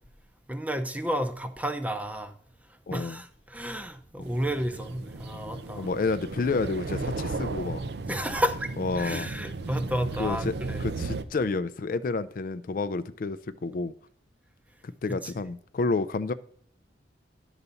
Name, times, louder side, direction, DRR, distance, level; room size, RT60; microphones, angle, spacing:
voice 1, 0.5-2.3 2.9-5.9 8.1-8.7 9.0-10.8 15.2-15.3, equal, 10° right, 0.6 m, -31 dB
voice 2, 2.9-3.2 5.8-7.8 8.8-9.3 10.2-13.4 13.6-13.9 14.8-16.3, left 3 dB, 50° left, 0.4 m, -30 dB
sound 1, 4.2-11.2, right 3 dB, 65° right, 0.6 m, -35 dB
11.0 x 4.0 x 6.9 m
head